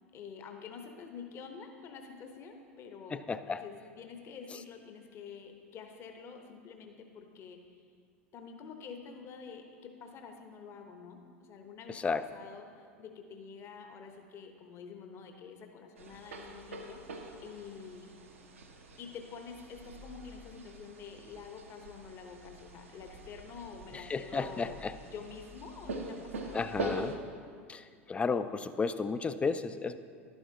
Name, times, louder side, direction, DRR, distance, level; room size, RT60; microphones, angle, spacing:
voice 1, 0.1-7.8 8.3-12.0 12.3-18.1 19.0-26.7, left 6 dB, 40° left, 5 dB, 0.9 m, -48 dB
voice 2, 3.1-3.6 11.9-12.2 23.9-24.9 26.5-27.2 27.7-30.0, left 4 dB, 15° left, 12 dB, 0.4 m, -33 dB
sound 1, 16.0-27.1, right 2 dB, 75° right, 1.0 m, -44 dB
11.5 x 10.0 x 2.8 m, 2.2 s
figure-of-eight pair, 80°, 7 cm